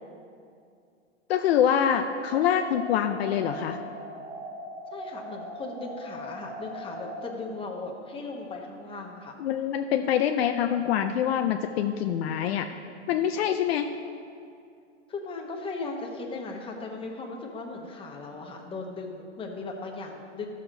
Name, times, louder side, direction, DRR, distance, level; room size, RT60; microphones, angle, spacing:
voice 1, 1.3-3.8 9.4-12.7 13.1-13.9, left 9 dB, 60° left, 6 dB, 0.6 m, -25 dB
sound 1, 2.3-7.3, equal, 15° right, 0.8 m, -40 dB
voice 2, 4.9-9.3 15.1-20.5, left 3 dB, 15° left, 0 dB, 1.1 m, -37 dB
13.0 x 6.5 x 3.9 m, 2.5 s
hypercardioid pair, 120°, 36 cm